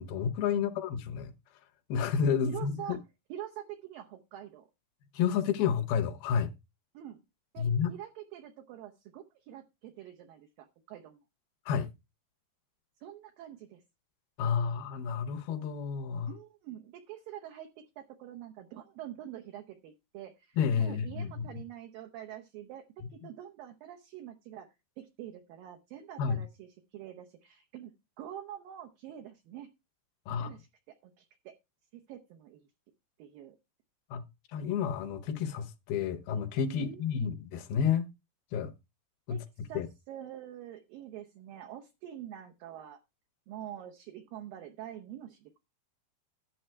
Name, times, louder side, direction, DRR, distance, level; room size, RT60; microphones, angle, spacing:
voice 1, 0.0-1.3 1.9-3.0 5.1-6.5 7.6-7.9 11.7-11.9 14.4-16.3 20.6-21.5 26.2-26.4 30.3-30.5 34.1-34.2 34.5-38.1 38.5-38.7 39.3-39.4 39.7-39.9, left 7 dB, 75° left, 2.6 m, -30 dB
voice 2, 2.4-3.0 3.3-4.7 6.9-7.2 7.5-11.2 13.0-13.8 16.3-27.9 28.2-29.7 30.4-30.7 31.0-31.5 31.9-32.7 33.2-33.6 36.8-37.4 39.3-43.0 43.5-45.6, right 11 dB, 70° right, 2.4 m, -46 dB
11.0 x 7.0 x 4.4 m
omnidirectional pair, 4.8 m